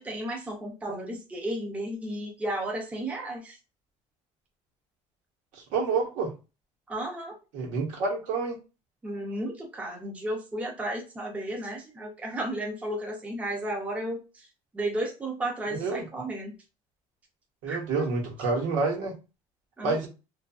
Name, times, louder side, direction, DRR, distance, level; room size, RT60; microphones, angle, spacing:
voice 1, 0.0-3.6 6.9-7.4 9.0-14.5 14.7-16.5 17.7-17.8 19.8-20.1, right 1 dB, 10° right, 0.6 m, -33 dB
voice 2, 5.5-6.3 7.5-8.6 15.7-16.0 17.6-19.1 19.8-20.1, right 4 dB, 80° right, 1.2 m, -28 dB
2.7 x 2.5 x 2.3 m
cardioid pair, 165°, 13 cm